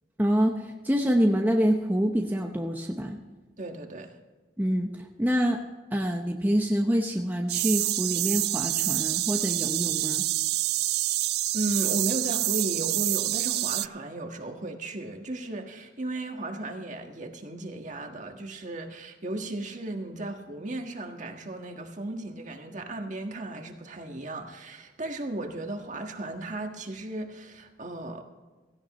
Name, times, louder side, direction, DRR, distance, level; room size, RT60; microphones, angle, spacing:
voice 1, 0.2-3.2 4.6-5.6 5.9-10.2, equal, 10° right, 1 dB, 0.8 m, -26 dB
voice 2, 3.6-4.1 11.5-28.2, right 2 dB, 45° right, 4 dB, 1.6 m, -35 dB
sound 1, 7.5-13.9, right 17 dB, 60° right, 0.3 m, -27 dB
17.0 x 16.0 x 3.1 m, 1.3 s
head